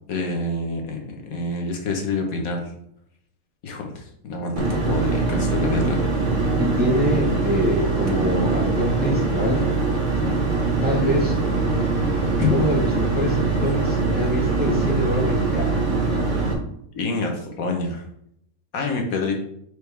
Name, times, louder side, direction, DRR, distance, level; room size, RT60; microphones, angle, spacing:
voice 1, 0.1-2.7 3.6-6.1 12.4-12.5 16.9-18.0 18.7-19.3, left 3 dB, 75° left, 2 dB, 1.6 m, -27 dB
sound 1, 4.6-16.5, right 3 dB, 35° right, 1.2 m, -22 dB
voice 2, 6.6-9.7 10.8-11.4 12.5-15.8, equal, 10° right, -1 dB, 0.9 m, -25 dB
6.3 x 5.0 x 3.4 m, 0.73 s
omnidirectional pair, 1.5 m